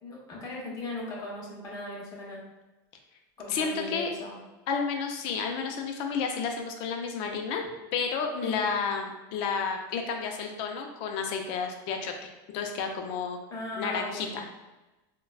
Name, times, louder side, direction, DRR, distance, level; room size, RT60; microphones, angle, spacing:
voice 1, 0.0-2.4 3.4-4.4 8.3-8.6 13.5-14.3, left 2 dB, 35° left, -4 dB, 1.0 m, -38 dB
voice 2, 3.5-4.1 4.7-7.6 7.9-13.4 13.8-14.4, left 5 dB, 55° left, 3 dB, 0.5 m, -31 dB
3.7 x 2.2 x 2.3 m, 1.1 s
supercardioid pair, 140°, 10 cm